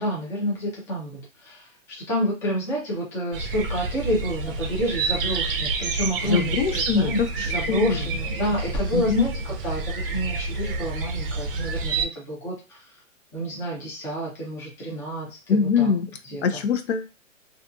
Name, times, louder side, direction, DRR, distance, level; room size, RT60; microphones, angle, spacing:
voice 1, 0.0-1.7 2.0-12.8 13.3-15.9 16.3-16.5, equal, 5° left, -4 dB, 0.4 m, -29 dB
sound 1, 3.3-12.0, right 3 dB, 45° right, 0.6 m, -28 dB
voice 2, 6.2-8.1 8.9-9.3 15.5-16.1 16.4-17.1, left 6 dB, 55° left, 7 dB, 0.5 m, -23 dB
2.5 x 2.4 x 2.5 m, 0.29 s
hypercardioid pair, 135°, 39 cm